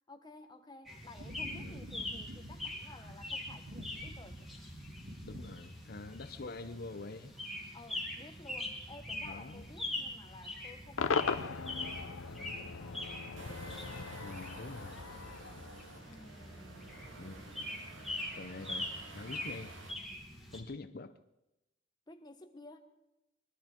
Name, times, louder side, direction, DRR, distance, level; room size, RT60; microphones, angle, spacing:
voice 1, 0.1-4.4 7.7-13.0 16.0-17.0 22.1-22.8, left 2 dB, 20° left, 1.3 m, -54 dB
sound 1, 0.8-20.6, left 2 dB, ahead, 2.6 m, -44 dB
sound 2, 1.2-19.9, right 1 dB, 65° right, 1.9 m, -52 dB
voice 2, 1.5-1.9 5.2-7.3 9.2-9.6 14.2-15.1 17.2-17.7 18.4-19.8 20.5-21.2, left 3 dB, 50° left, 0.7 m, -46 dB
Cheering / Crowd / Fireworks, 11.0-16.3, left 5 dB, 85° left, 0.7 m, -38 dB
21.5 x 13.0 x 4.5 m
head